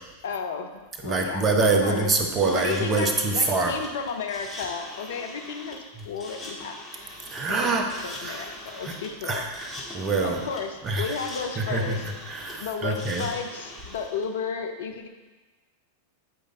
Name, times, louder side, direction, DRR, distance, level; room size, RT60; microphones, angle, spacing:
voice 1, 0.2-0.7 1.0-1.5 1.8-2.1 2.4-5.8 6.0-7.2 7.5-7.7 8.0-9.4 10.2-12.0 12.6-15.1, left 6 dB, 60° left, 5 dB, 0.7 m, -33 dB
voice 2, 1.0-3.8 6.0-6.1 7.3-7.9 8.2-9.0 9.2-10.4 10.8-11.2 11.6-13.3, right 3 dB, 25° right, 3 dB, 1.0 m, -25 dB
sound 1, 2.3-14.2, left 1 dB, 15° left, 1.9 m, -42 dB
9.1 x 5.1 x 3.9 m, 1.3 s
figure-of-eight pair, 90°, 0 cm